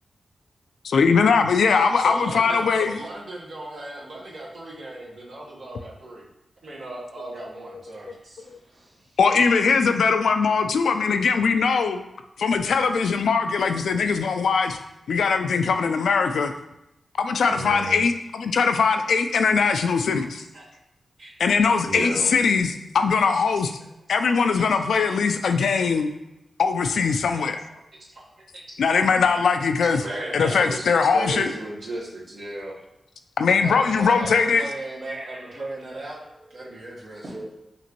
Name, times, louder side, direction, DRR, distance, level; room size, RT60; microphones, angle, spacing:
voice 1, 0.8-3.0 9.2-12.0 12.4-14.8 15.1-16.5 17.2-20.4 21.4-23.7 24.1-26.1 26.6-27.6 28.8-30.0 30.3-31.5 33.4-34.6, left 5 dB, 90° left, 7 dB, 0.3 m, -21 dB
voice 2, 1.8-6.2 6.6-8.4 15.5-15.6 17.5-18.0 19.7-19.8 20.1-20.2 20.5-20.6 21.2-21.3 21.8-22.3 24.3-24.4 28.1-29.1 29.8-32.8 33.6-36.2 36.5-37.2, right 1 dB, 75° right, -5 dB, 1.2 m, -36 dB
voice 3, 8.4-9.2 35.0-36.7 37.2-37.4, right 1 dB, 60° right, -5 dB, 1.5 m, -43 dB
5.7 x 2.6 x 2.9 m, 0.88 s
cardioid pair, 75°, 0 cm